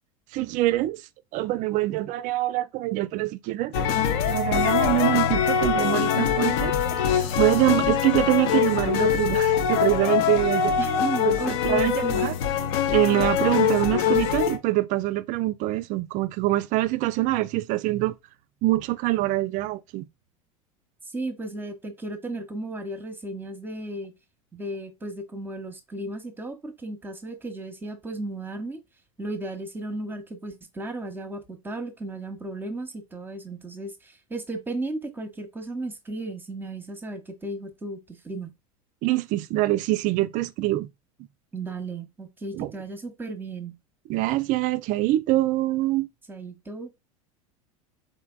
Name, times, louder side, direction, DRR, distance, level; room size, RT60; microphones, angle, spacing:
voice 1, 0.3-1.0 1.3-3.7 4.3-10.7 11.3-12.3 12.9-18.1 18.6-20.1 39.0-40.9 42.5-42.7 44.1-46.1, right 17 dB, 45° right, 0.4 m, -24 dB
sound 1, 3.7-14.6, left 8 dB, 55° left, 0.7 m, -23 dB
voice 2, 10.8-12.2 21.1-24.1 24.5-28.8 29.2-38.5 41.5-43.8 46.3-46.9, right 2 dB, 10° right, 0.9 m, -35 dB
4.3 x 3.3 x 2.3 m
hypercardioid pair, 85°, 19 cm